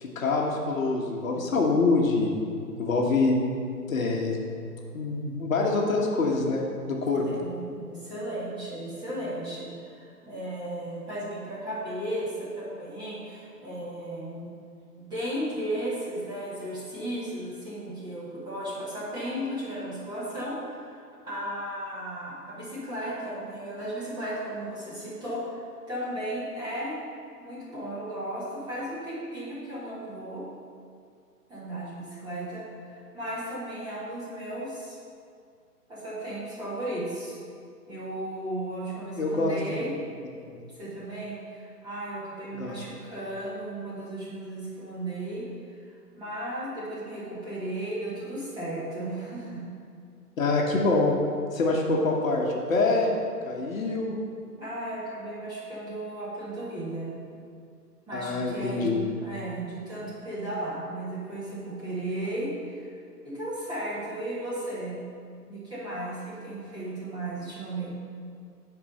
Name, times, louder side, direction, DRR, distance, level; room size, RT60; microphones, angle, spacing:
voice 1, 0.0-2.3 2.8-3.6 3.9-4.4 4.9-6.6 6.9-7.2 39.2-39.9 40.5-40.6 42.6-42.7 50.4-51.1 51.5-53.1 53.4-54.2 58.1-59.0, left 3 dB, 55° left, 0 dB, 1.3 m, -25 dB
voice 2, 7.2-14.5 14.9-27.0 27.4-30.4 31.5-35.0 35.9-37.4 37.9-39.9 40.7-49.6 54.6-57.1 58.1-59.0 59.2-62.9 63.2-65.0 65.5-67.9, right 1 dB, 10° right, -9 dB, 1.7 m, -35 dB
8.6 x 4.7 x 5.4 m, 2.3 s
figure-of-eight pair, 140°, 48 cm